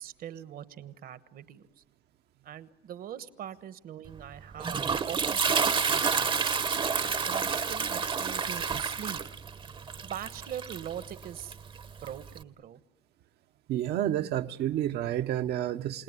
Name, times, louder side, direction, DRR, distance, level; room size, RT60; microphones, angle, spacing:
voice 1, 0.0-1.8 2.4-4.8 5.1-6.7 7.3-9.2 10.0-11.6 12.0-12.8, right 10 dB, 60° right, 1.2 m, -42 dB
Toilet flush, 4.1-12.4, right 5 dB, 30° right, 0.8 m, -30 dB
voice 2, 13.7-16.0, right 12 dB, 75° right, 1.1 m, -30 dB
29.5 x 18.0 x 9.8 m
cardioid pair, 110°, 17 cm